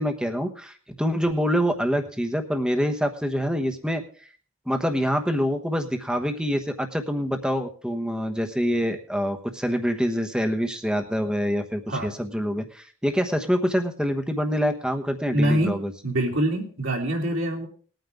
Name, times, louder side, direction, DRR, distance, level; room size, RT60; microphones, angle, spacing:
voice 1, 0.0-4.0 4.7-15.9, equal, 5° right, 6 dB, 1.1 m, -26 dB
voice 2, 15.3-15.8 16.0-17.7, right 1 dB, 60° right, 0 dB, 3.0 m, -24 dB
20.0 x 9.2 x 3.5 m, 0.43 s
head